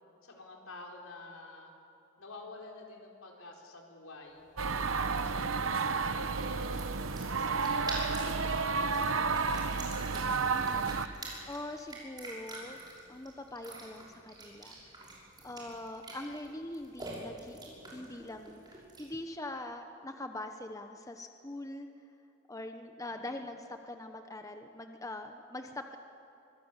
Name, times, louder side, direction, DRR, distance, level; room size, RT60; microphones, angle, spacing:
voice 1, 0.2-1.7 2.2-4.4 4.9-8.0 8.3-10.0 23.0-23.4, left 2 dB, 80° left, 0 dB, 4.4 m, -50 dB
sound 1, 4.4-19.2, right 2 dB, 20° right, 6.0 m, -47 dB
sound 2, 4.6-11.1, right 4 dB, 70° right, 0.9 m, -31 dB
voice 2, 10.5-10.9 11.5-12.8 13.1-14.7 15.4-17.6 17.9-21.9 22.5-26.0, left 1 dB, 15° left, 6 dB, 0.9 m, -43 dB
24.5 x 20.5 x 8.2 m, 2.7 s
head